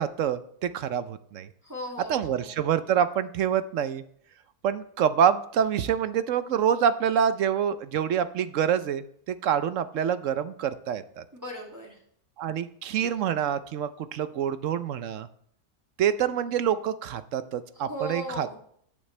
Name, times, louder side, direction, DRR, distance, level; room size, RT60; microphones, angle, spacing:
voice 1, 0.0-1.5 2.1-4.0 4.6-11.2 12.4-15.3 16.0-18.5, right 8 dB, 65° right, 12 dB, 0.9 m, -26 dB
voice 2, 1.6-2.5 11.3-11.9 17.9-18.5, right 1 dB, 10° right, -3 dB, 2.4 m, -36 dB
14.5 x 8.6 x 3.2 m, 0.64 s
omnidirectional pair, 1.6 m